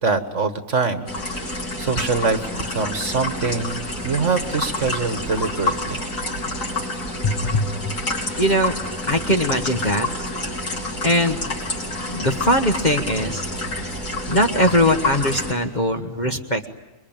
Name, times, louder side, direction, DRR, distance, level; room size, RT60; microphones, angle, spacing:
voice 1, 0.0-1.1 1.4-6.0, right 4 dB, 45° right, 9 dB, 1.7 m, -24 dB
sound 1, 1.1-15.5, left 2 dB, 65° left, 5.3 m, -28 dB
voice 2, 7.2-7.7 8.4-8.7 9.1-10.1 11.0-11.7 12.1-13.4 14.3-16.7, left 1 dB, 30° left, 4 dB, 1.2 m, -21 dB
27.5 x 23.0 x 8.9 m, 1.0 s
omnidirectional pair, 1.8 m